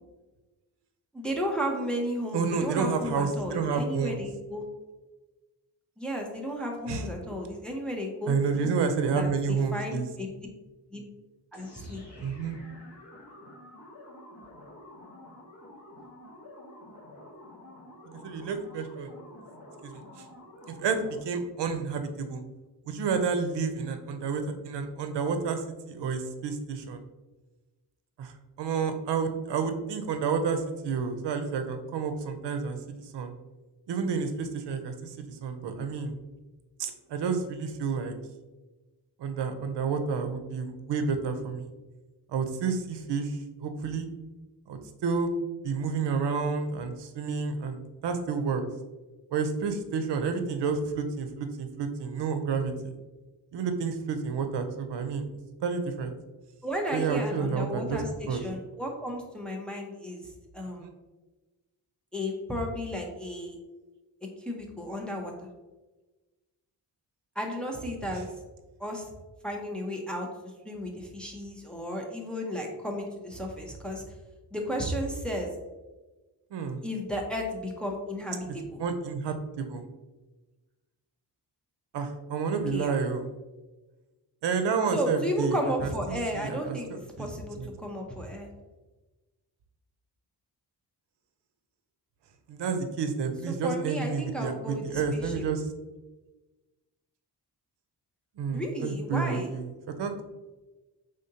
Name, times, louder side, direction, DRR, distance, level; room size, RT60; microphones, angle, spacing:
voice 1, 1.1-4.6 6.0-8.7 9.2-10.3 10.9-11.0 11.5-12.0 56.6-60.3 60.5-60.9 62.1-63.6 64.4-65.3 67.4-68.3 68.8-69.1 69.4-74.0 74.5-75.5 76.8-78.8 82.7-82.9 84.9-86.9 87.2-88.5 93.6-95.4 98.5-99.5, equal, ahead, 0 dB, 0.6 m, -33 dB
voice 2, 2.3-4.2 6.9-7.1 8.3-10.0 12.2-12.6 18.1-19.1 19.8-20.3 20.7-22.4 22.8-27.0 28.2-33.3 33.9-36.2 36.8-38.1 39.2-41.7 42.3-44.1 44.7-45.3 45.6-48.6 49.3-52.9 53.5-55.3 55.6-56.1 56.9-58.4 60.8-60.9 76.5-76.8 78.8-79.8 81.9-83.3 84.4-86.8 87.2-87.3 87.6-87.7 92.5-95.6 98.4-100.2, right 5 dB, 80° right, 8 dB, 0.6 m, -30 dB
sound 1, 11.5-21.4, left 1 dB, 40° left, 1.5 m, -49 dB
5.0 x 3.7 x 2.8 m, 1.2 s
wide cardioid pair, 140°, 41 cm